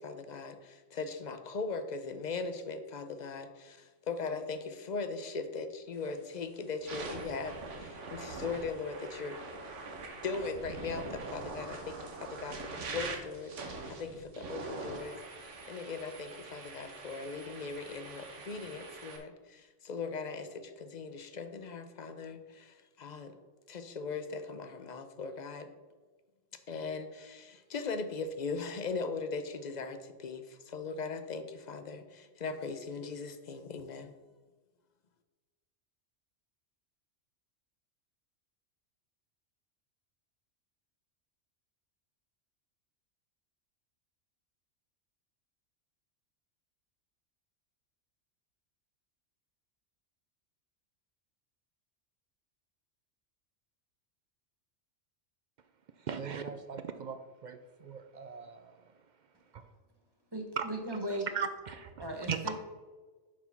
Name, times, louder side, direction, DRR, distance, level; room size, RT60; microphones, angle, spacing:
voice 1, 0.0-9.4 10.2-23.4 23.7-25.7 26.7-34.1, left 4 dB, 45° left, 0.7 m, -39 dB
sound 1, 6.0-6.2 6.7-19.2, right 3 dB, 75° right, 1.4 m, -43 dB
voice 2, 56.1-58.7 59.5-59.6 60.6-60.7 61.3-62.4, right 6 dB, 60° right, 0.5 m, -38 dB
voice 3, 60.3-61.3 62.0-62.6, right 1 dB, 20° right, 1.2 m, -37 dB
7.1 x 4.8 x 5.8 m
omnidirectional pair, 1.2 m